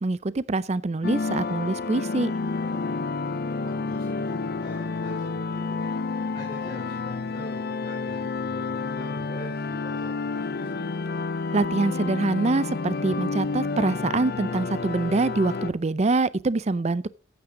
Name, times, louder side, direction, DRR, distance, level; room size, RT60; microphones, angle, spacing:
voice 1, 0.0-2.3 11.5-17.1, right 3 dB, 35° right, 0.5 m, -25 dB
sound 1, 1.0-15.7, left 4 dB, 55° left, 0.6 m, -30 dB
voice 2, 3.3-5.8 6.3-10.9, equal, 25° left, 4.6 m, -44 dB
14.0 x 9.6 x 3.8 m
head